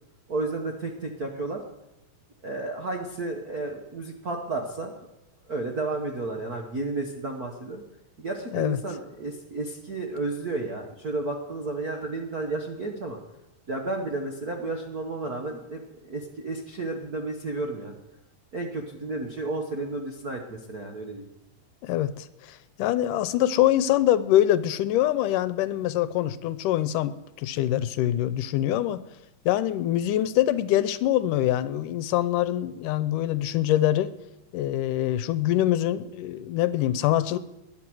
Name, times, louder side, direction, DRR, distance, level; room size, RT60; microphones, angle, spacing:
voice 1, 0.3-1.6 2.4-4.9 5.5-7.8 8.2-13.2 13.7-18.0 18.5-21.2, right 2 dB, 55° right, 2 dB, 1.0 m, -32 dB
voice 2, 21.8-29.0 29.5-34.1 34.5-37.4, left 13 dB, 80° left, 14 dB, 2.2 m, -24 dB
20.5 x 10.0 x 6.2 m, 0.94 s
omnidirectional pair, 3.8 m